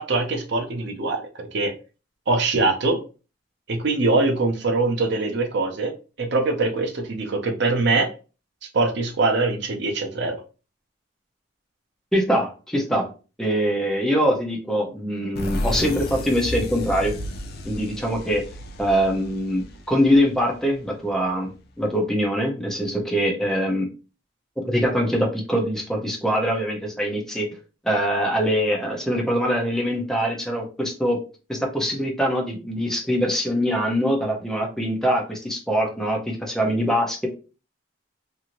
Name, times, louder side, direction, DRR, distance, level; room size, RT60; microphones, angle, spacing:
voice 1, 0.0-1.7 2.3-3.0 3.7-5.9 6.2-8.1 8.7-10.4, right 3 dB, 60° right, 5 dB, 0.6 m, -23 dB
voice 2, 12.1-13.1 13.4-17.1 17.6-18.4 18.8-23.9 24.6-27.5 27.8-31.2 31.5-37.3, equal, 5° left, -1 dB, 0.7 m, -23 dB
sound 1, 15.4-20.9, left 1 dB, 55° left, 0.5 m, -32 dB
2.7 x 2.6 x 2.9 m, 0.33 s
head